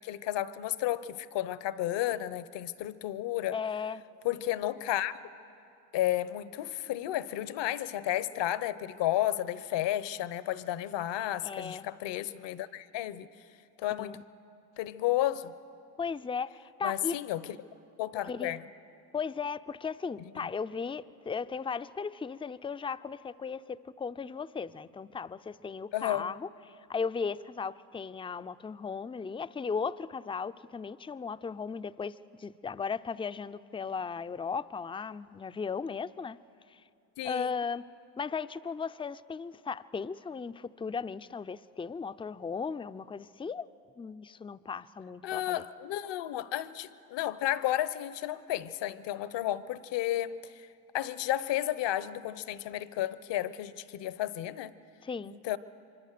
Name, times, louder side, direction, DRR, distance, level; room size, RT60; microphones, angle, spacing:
voice 1, 0.0-3.6 4.2-5.1 5.9-13.3 13.8-14.2 14.8-15.5 16.8-17.5 18.0-18.6 25.9-26.2 37.2-37.6 45.2-50.7 50.9-54.7 55.3-55.6, left 13 dB, 60° left, 1.0 m, -32 dB
voice 2, 3.5-4.0 11.4-11.9 14.0-14.2 16.0-17.2 18.3-18.6 19.1-36.4 36.7-36.8 37.2-37.8 38.2-43.7 44.0-45.6 55.0-55.4, left 5 dB, 10° left, 0.5 m, -36 dB
25.0 x 24.5 x 6.8 m
hypercardioid pair, 65°, 48 cm